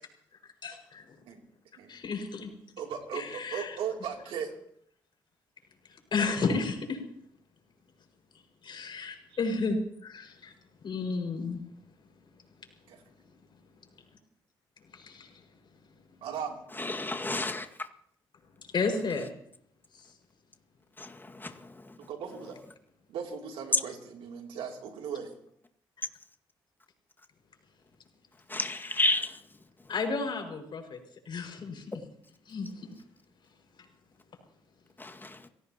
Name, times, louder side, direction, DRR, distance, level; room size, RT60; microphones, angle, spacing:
voice 1, 0.6-1.0 1.9-2.5 3.1-3.7 6.1-7.0 8.6-10.5 10.8-11.6 14.9-15.3 18.7-19.3 29.9-31.0 31.3-31.8 32.5-32.9, left 4 dB, 60° left, 5.7 m, -32 dB
voice 2, 2.8-4.5 12.9-13.0 16.2-16.6 22.0-22.6 23.1-25.3, right 7 dB, 80° right, 3.1 m, -37 dB
voice 3, 16.7-17.9 21.0-22.1 28.5-29.4 35.0-35.5, left 2 dB, 20° left, 2.0 m, -32 dB
28.0 x 17.5 x 3.0 m
supercardioid pair, 50°, 9 cm